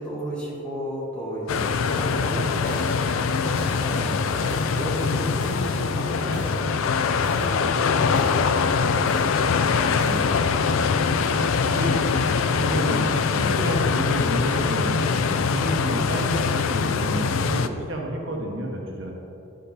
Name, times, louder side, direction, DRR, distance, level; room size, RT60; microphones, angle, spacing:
voice 1, 0.0-3.1 3.4-6.9 7.2-8.9, equal, 5° left, -6 dB, 1.5 m, -33 dB
sound 1, 1.5-17.7, left 5 dB, 70° left, 0.4 m, -23 dB
sound 2, 1.9-2.1 2.7-3.0 3.6-3.9 4.5-4.8 5.4-5.7 6.3-6.7 7.2-7.6 8.2-8.5 9.1-9.4 10.0-10.3, right 2 dB, 25° right, 0.4 m, -41 dB
voice 2, 9.7-10.7 11.6-12.2 12.5-19.1, right 1 dB, 60° right, -1 dB, 1.3 m, -31 dB
11.5 x 5.1 x 4.3 m, 2.9 s
head